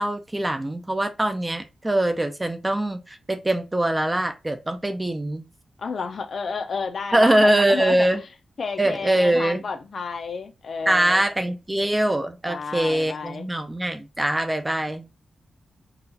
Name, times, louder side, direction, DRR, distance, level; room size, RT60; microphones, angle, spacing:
voice 1, 0.0-5.4 7.1-8.2 8.8-9.7 10.9-15.1, right 1 dB, 15° right, 0.4 m, -23 dB
voice 2, 5.8-8.1 8.6-11.3 12.5-13.5, left 5 dB, 50° left, 0.5 m, -31 dB
3.9 x 2.4 x 2.6 m
wide cardioid pair, 145°, 0 cm